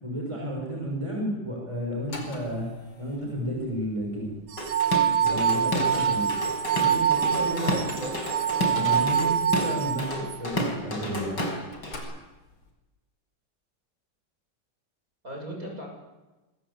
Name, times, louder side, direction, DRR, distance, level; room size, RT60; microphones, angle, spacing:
voice 1, 0.0-2.7 3.0-4.3 5.2-6.3 6.7-8.1 8.6-11.4, equal, 15° right, 0 dB, 6.1 m, -32 dB
sound 1, 2.0-11.4 11.7-12.7, left 2 dB, 80° left, 5.7 m, -42 dB
sound 2, 4.5-10.4, right 8 dB, 70° right, 1.9 m, -25 dB
Drum kit / Drum, 4.6-6.0 6.3-12.0, left 1 dB, 55° left, 5.6 m, -31 dB
voice 2, 7.1-8.1 15.2-15.9, equal, 40° right, 1 dB, 8.0 m, -38 dB
27.0 x 23.0 x 8.5 m, 1.1 s
omnidirectional pair, 2.3 m